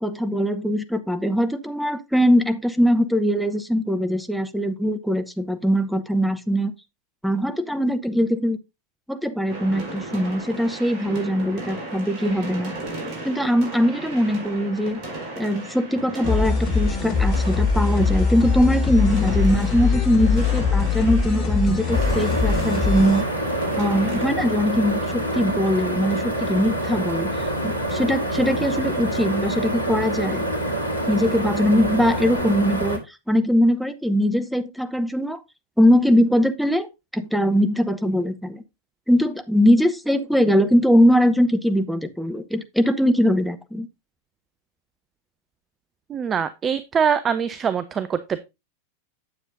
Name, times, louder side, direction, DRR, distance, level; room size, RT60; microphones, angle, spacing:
voice 1, 0.0-6.7 7.2-8.6 9.1-12.7 13.2-15.0 15.4-23.2 23.8-30.5 31.1-35.4 35.8-36.9 37.1-38.6 39.1-43.9, equal, ahead, 0.9 m, -21 dB
sound 1, 9.5-24.2, right 2 dB, 40° right, 4.7 m, -35 dB
sound 2, 16.2-23.2, left 5 dB, 35° left, 3.3 m, -22 dB
sound 3, 21.9-33.0, right 1 dB, 85° left, 1.7 m, -26 dB
voice 2, 46.1-48.4, right 7 dB, 25° right, 0.5 m, -23 dB
9.6 x 7.2 x 2.6 m
figure-of-eight pair, 90°, 0 cm